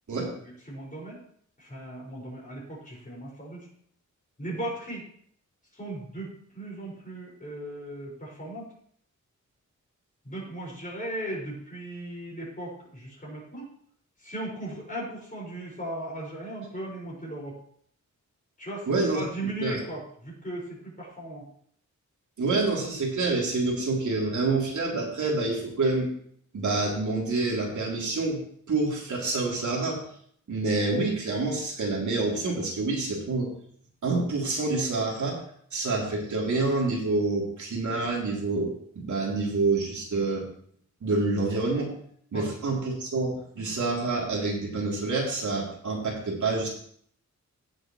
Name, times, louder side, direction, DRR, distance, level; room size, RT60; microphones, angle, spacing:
voice 1, 0.6-1.2 1.6-3.7 4.4-5.0 5.7-8.7 10.2-13.7 14.2-17.6 18.6-21.5 38.0-38.1 39.3-39.4 42.3-42.6, right 1 dB, 25° left, -3 dB, 5.6 m, -37 dB
voice 2, 18.9-19.2 19.6-19.8 22.4-26.1 26.5-28.4 28.7-30.0 30.5-33.5 34.0-35.4 35.7-40.5 41.0-41.9 42.3-46.7, right 3 dB, 75° right, -3 dB, 3.3 m, -27 dB
16.5 x 7.8 x 3.2 m, 0.62 s
wide cardioid pair, 120°, 30 cm